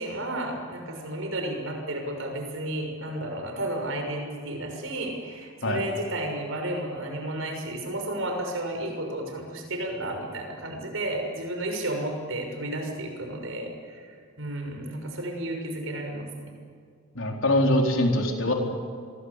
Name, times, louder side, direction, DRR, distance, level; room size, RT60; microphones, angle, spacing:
voice 1, 0.0-16.5, right 1 dB, 65° right, 3 dB, 6.4 m, -32 dB
voice 2, 17.1-18.5, left 1 dB, 60° left, 2 dB, 4.3 m, -23 dB
27.0 x 22.0 x 8.4 m, 2.2 s
head